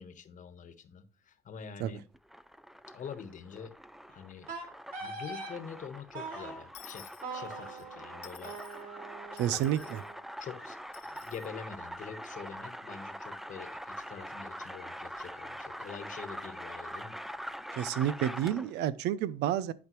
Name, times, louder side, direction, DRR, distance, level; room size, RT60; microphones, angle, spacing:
voice 1, 0.0-2.0 2.9-3.7 4.1-4.5 5.0-8.5 9.4-9.9 10.4-10.8 11.1-17.2, left 6 dB, 50° left, 1.2 m, -45 dB
sound 1, 2.1-18.8, equal, ahead, 0.4 m, -44 dB
Wind instrument woodwind instrument, 4.5-5.6 6.1-6.6 7.2-10.2, right 3 dB, 55° right, 2.9 m, -42 dB
Dishes pots and pans / Coin (dropping), 6.7-7.9 8.2-8.8 9.4-10.1 10.9-11.5, left 13 dB, 80° left, 0.9 m, -53 dB
voice 2, 9.4-10.0 17.7-19.7, right 11 dB, 80° right, 0.6 m, -30 dB
11.0 x 5.1 x 3.1 m
cardioid pair, 110°, 17 cm